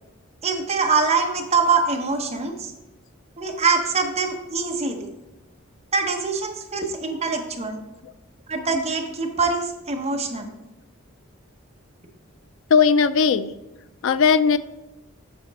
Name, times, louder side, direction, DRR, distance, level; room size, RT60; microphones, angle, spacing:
voice 1, 0.4-2.7 3.4-5.1 5.9-7.8 8.5-10.5, right 4 dB, 30° right, 3 dB, 0.9 m, -24 dB
voice 2, 12.7-13.5 14.0-14.6, left 6 dB, 65° left, 13 dB, 0.4 m, -18 dB
7.5 x 5.1 x 4.1 m, 1.0 s
head